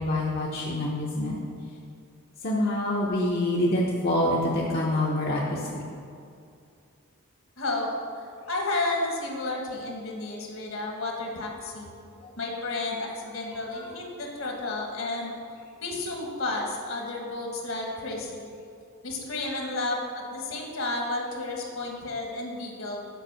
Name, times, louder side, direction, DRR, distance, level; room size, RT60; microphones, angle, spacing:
voice 1, 0.0-1.4 2.4-5.6 12.2-12.3 13.8-13.9, left 1 dB, 50° left, -4 dB, 0.9 m, -26 dB
voice 2, 7.6-11.9 12.4-15.3 15.8-18.5 19.0-23.1, left 2 dB, 70° left, 0 dB, 1.6 m, -32 dB
8.1 x 5.2 x 6.3 m, 2.4 s
head